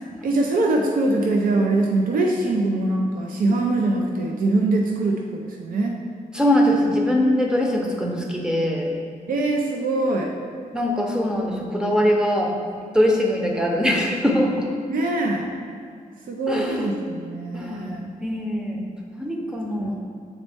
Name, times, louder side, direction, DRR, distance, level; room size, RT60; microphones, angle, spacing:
voice 1, 0.2-6.0 9.3-10.3 14.9-15.5 16.3-18.1 19.6-20.0, right 2 dB, 85° right, 1 dB, 0.5 m, -23 dB
voice 2, 6.3-8.9 10.7-12.5 12.9-14.7 16.5-16.9 17.5-17.9 18.2-20.0, equal, 5° right, 0 dB, 0.7 m, -22 dB
7.2 x 4.1 x 3.4 m, 2.1 s
wide cardioid pair, 155°, 14 cm